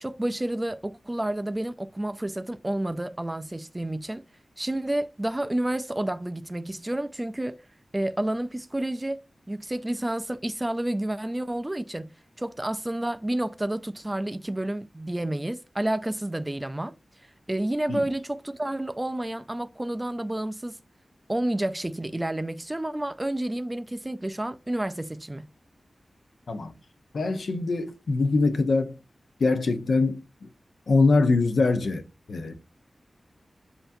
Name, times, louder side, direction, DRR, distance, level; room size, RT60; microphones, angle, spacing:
voice 1, 0.0-4.2 4.6-7.6 7.9-9.2 9.5-12.1 12.4-16.9 17.5-20.8 21.3-25.5, right 1 dB, 15° right, 0.3 m, -30 dB
voice 2, 27.1-29.0 29.4-30.5 30.9-32.5, left 3 dB, 75° left, 0.6 m, -23 dB
7.7 x 2.6 x 2.5 m
wide cardioid pair, 110°, 0 cm